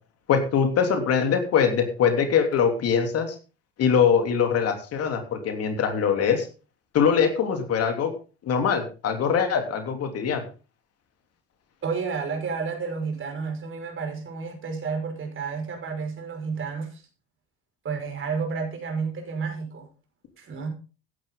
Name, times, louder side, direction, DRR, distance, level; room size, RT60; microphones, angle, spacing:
voice 1, 0.3-3.4 3.8-6.5 6.9-8.1 8.4-10.4, left 7 dB, 50° left, 5 dB, 3.3 m, -22 dB
voice 2, 11.8-17.0 17.8-19.9 20.4-20.7, right 5 dB, 40° right, 4 dB, 5.6 m, -31 dB
14.5 x 11.5 x 3.9 m, 0.34 s
hypercardioid pair, 65°, 31 cm